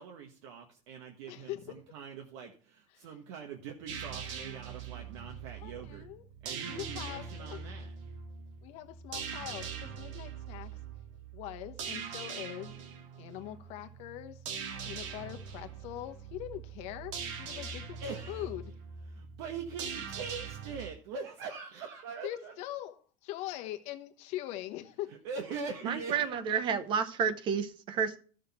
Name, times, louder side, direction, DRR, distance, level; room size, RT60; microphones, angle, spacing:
voice 1, 0.0-6.1 6.4-7.9 17.5-17.7 18.0-18.5 19.1-22.5 25.2-26.3, right 5 dB, 65° right, 1.4 m, -42 dB
voice 2, 1.3-1.8 2.9-3.1 5.6-6.2 6.7-7.7 8.6-10.8 11.3-12.7 13.2-14.4 14.9-18.0 18.3-18.7 22.2-25.2, left 14 dB, 45° left, 1.0 m, -42 dB
sound 1, 3.9-20.9, right 6 dB, 85° right, 2.1 m, -42 dB
voice 3, 25.8-28.2, right 7 dB, 30° right, 0.8 m, -30 dB
14.0 x 6.5 x 4.2 m
cardioid pair, 170°, 15 cm